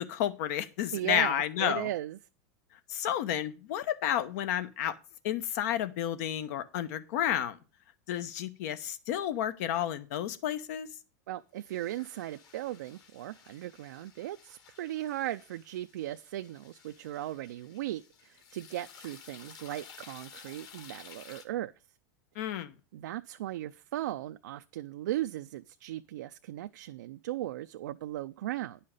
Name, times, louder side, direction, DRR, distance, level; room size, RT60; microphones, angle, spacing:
voice 1, 0.0-1.9 2.9-5.0 5.2-7.6 8.1-10.9 22.4-22.7, left 11 dB, 65° left, 1.0 m, -31 dB
voice 2, 0.9-2.2 11.3-21.7 22.9-28.8, right 14 dB, 80° right, 0.4 m, -37 dB
sound 1, 11.6-21.4, left 7 dB, 45° left, 1.8 m, -54 dB
10.0 x 5.6 x 6.5 m
supercardioid pair, 125°, 9 cm